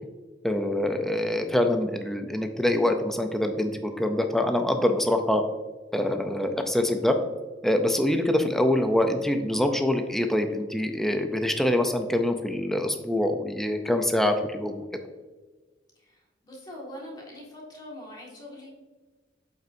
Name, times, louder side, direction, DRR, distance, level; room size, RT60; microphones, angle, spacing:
voice 1, 0.4-5.4 5.9-7.2 7.6-14.9, left 1 dB, ahead, 5 dB, 0.4 m, -25 dB
voice 2, 16.4-18.7, left 1 dB, 20° left, -3 dB, 1.7 m, -42 dB
7.5 x 5.5 x 2.6 m, 1.3 s
head